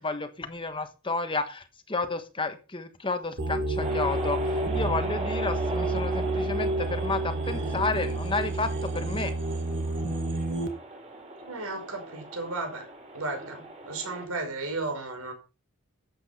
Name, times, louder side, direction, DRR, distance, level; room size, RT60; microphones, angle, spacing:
voice 1, 0.0-9.3, left 3 dB, 20° left, 1.3 m, -31 dB
sound 1, 3.4-10.7, right 2 dB, 55° right, 2.1 m, -29 dB
sound 2, 3.8-14.3, right 1 dB, 30° right, 4.1 m, -39 dB
voice 2, 11.4-12.9 13.1-15.3, right 3 dB, 75° right, 5.3 m, -34 dB
13.0 x 8.3 x 5.7 m
head